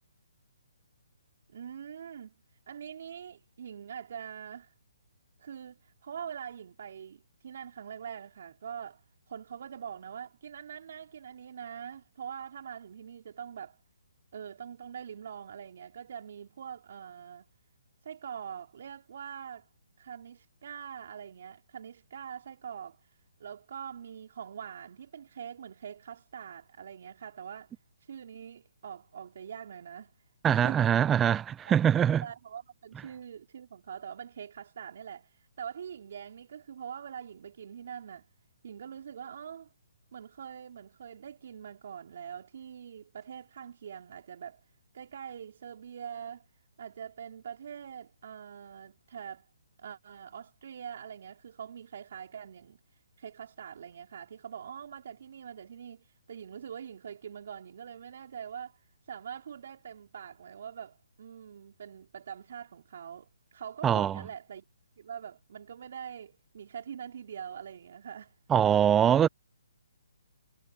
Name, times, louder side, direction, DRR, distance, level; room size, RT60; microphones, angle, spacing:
voice 1, 1.5-2.3 2.7-4.7 5.4-13.8 14.3-17.5 18.0-19.7 20.0-27.7 28.0-30.1 30.5-31.0 31.6-38.3 38.6-39.7 40.1-44.6 44.9-46.4 46.8-49.5 49.8-52.8 53.2-64.6 65.0-68.3, right 8 dB, 55° right, 4.4 m, -44 dB
voice 2, 30.4-32.2 63.8-64.2 68.5-69.3, right 9 dB, 15° right, 0.7 m, -23 dB
hypercardioid pair, 145°, 0 cm